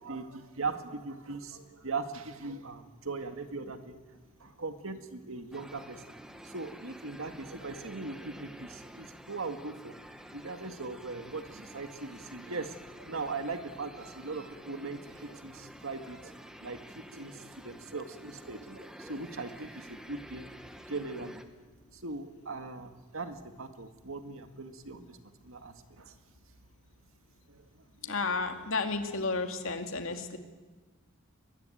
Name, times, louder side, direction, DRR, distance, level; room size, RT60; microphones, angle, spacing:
voice 1, 0.0-4.0 4.4-6.2 6.4-16.3 16.6-20.5 20.9-21.5 21.9-25.2 25.4-26.2 27.5-27.6 28.0-28.2, right 3 dB, 75° right, 7 dB, 2.0 m, -40 dB
sound 1, 5.5-21.4, equal, 5° right, 1.2 m, -50 dB
voice 2, 28.1-30.4, left 3 dB, 70° left, 5 dB, 2.4 m, -32 dB
23.0 x 21.5 x 9.2 m, 1.4 s
head